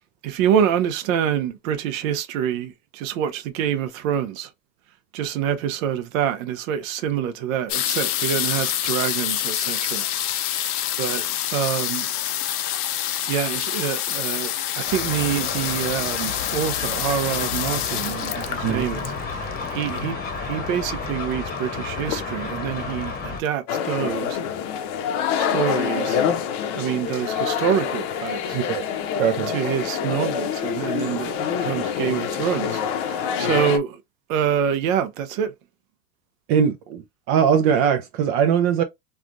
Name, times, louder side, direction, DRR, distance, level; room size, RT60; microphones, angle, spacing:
voice 1, 0.2-4.5 5.1-10.1 10.4-12.1 13.2-24.4 25.3-26.2 26.7-28.6 29.3-34.0 34.3-35.5, right 9 dB, 60° right, 0.9 m, -26 dB
sound 1, 7.7-20.2 21.1-21.2 21.3-21.7 22.1-22.6 23.2-23.3 23.5-23.6, left 11 dB, 85° left, 0.8 m, -27 dB
sound 2, 14.8-23.4, left 4 dB, 20° left, 0.9 m, -31 dB
sound 3, 23.7-33.8, left 8 dB, 45° left, 0.7 m, -26 dB
voice 2, 28.5-28.8 29.2-29.5 36.5-38.8, right 8 dB, 35° right, 0.4 m, -21 dB
3.4 x 2.3 x 2.5 m
supercardioid pair, 135°, 45 cm